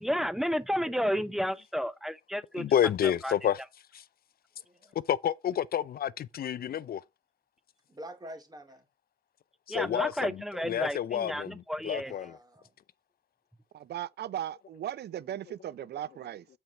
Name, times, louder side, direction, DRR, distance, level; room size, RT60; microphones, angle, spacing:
voice 1, 0.0-2.6 3.2-3.3 9.7-12.1, equal, ahead, 0.7 m, -31 dB
voice 2, 2.6-3.6 3.9-4.0 5.1-7.0 9.7-12.4, left 10 dB, 50° left, 0.5 m, -29 dB
voice 3, 4.6-5.0 7.9-8.9 12.0-12.8, right 1 dB, 20° right, 2.7 m, -47 dB
voice 4, 13.7-16.5, right 11 dB, 55° right, 0.5 m, -37 dB
8.0 x 4.6 x 4.2 m
cardioid pair, 90°, 20 cm